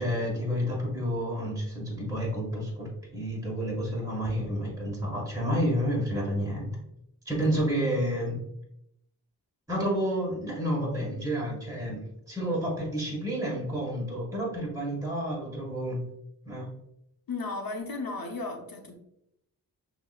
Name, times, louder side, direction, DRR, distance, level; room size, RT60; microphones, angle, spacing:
voice 1, 0.0-2.9 3.1-6.7 7.2-8.4 9.7-16.0 16.4-16.7, equal, 10° right, -4 dB, 1.6 m, -30 dB
voice 2, 17.3-18.9, left 3 dB, 60° left, 3 dB, 1.0 m, -35 dB
6.0 x 3.0 x 2.4 m, 0.79 s
cardioid pair, 50°, 40 cm